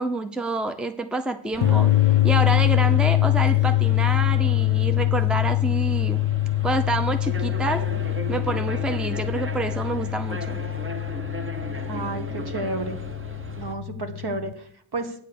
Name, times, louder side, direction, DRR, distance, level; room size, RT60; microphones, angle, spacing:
voice 1, 0.0-1.9 2.2-6.2 6.6-7.8 8.3-10.6, right 2 dB, ahead, 8 dB, 0.6 m, -27 dB
sound 1, 1.5-13.7, right 2 dB, 25° right, 0.9 m, -37 dB
sound 2, 1.6-14.5, left 16 dB, 75° left, 0.6 m, -23 dB
voice 2, 11.9-13.0 13.6-15.1, right 2 dB, 55° right, 6 dB, 1.7 m, -31 dB
9.2 x 6.7 x 6.7 m, 0.64 s
wide cardioid pair, 110°, 48 cm